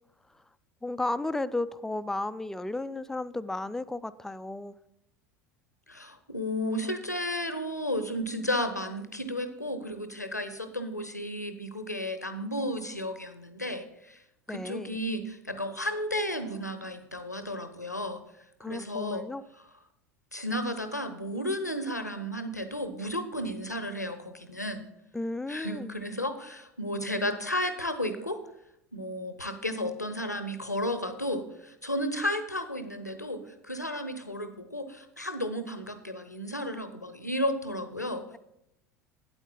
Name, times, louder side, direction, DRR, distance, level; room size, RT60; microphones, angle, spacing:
voice 1, 0.8-4.7 14.5-15.0 18.6-19.4 25.1-25.9, left 2 dB, 5° left, 14 dB, 0.4 m, -33 dB
voice 2, 5.9-14.2 14.5-18.2 18.7-19.2 20.3-24.9 25.5-28.4 28.9-38.2, left 1 dB, 90° left, 10 dB, 0.8 m, -33 dB
9.1 x 8.0 x 4.2 m, 0.81 s
figure-of-eight pair, 75°, 9 cm